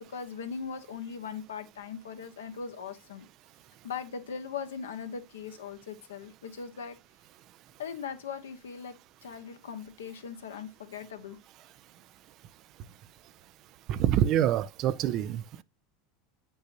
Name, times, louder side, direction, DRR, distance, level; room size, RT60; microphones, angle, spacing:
voice 1, 0.1-3.3 3.8-7.0 7.8-8.9 9.2-11.4, left 6 dB, 75° left, 1.3 m, -39 dB
voice 2, 13.9-15.6, right 11 dB, 50° right, 0.5 m, -26 dB
8.8 x 5.4 x 2.7 m
hypercardioid pair, 85°, 0 cm